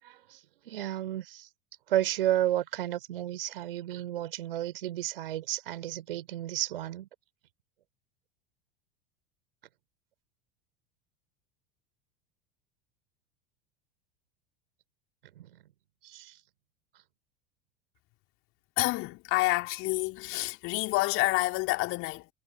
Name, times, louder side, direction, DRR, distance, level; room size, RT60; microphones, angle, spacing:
voice 1, 0.0-0.4 0.7-1.5 1.9-7.1 15.4-15.5 16.0-16.4, right 13 dB, 65° right, 3.9 m, -32 dB
voice 2, 18.8-22.3, left 21 dB, 45° left, 4.0 m, -28 dB
figure-of-eight pair, 75°, 30 cm